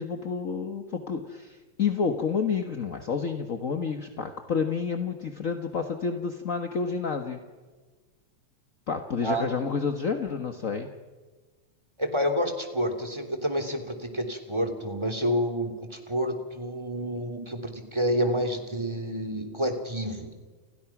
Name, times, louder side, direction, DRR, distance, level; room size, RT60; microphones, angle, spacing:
voice 1, 0.0-7.4 8.9-10.9, left 5 dB, 45° left, 6 dB, 1.1 m, -29 dB
voice 2, 12.0-20.3, equal, 10° right, 5 dB, 3.0 m, -29 dB
29.5 x 29.5 x 6.1 m, 1.3 s
omnidirectional pair, 3.3 m